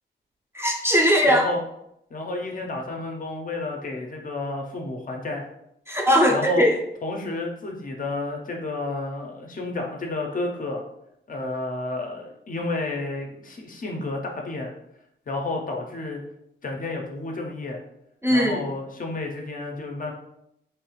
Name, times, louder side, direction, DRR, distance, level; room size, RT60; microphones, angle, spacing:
voice 1, 0.5-1.4 5.9-6.7 18.2-18.6, equal, 10° right, -2 dB, 0.4 m, -19 dB
voice 2, 1.2-1.6 2.1-5.5 6.3-6.6 7.0-10.8 11.3-14.7 15.3-16.2 16.6-17.8 18.3-20.1, left 2 dB, 45° left, 1 dB, 0.5 m, -31 dB
3.1 x 2.3 x 3.0 m, 0.79 s
wide cardioid pair, 165°, 20 cm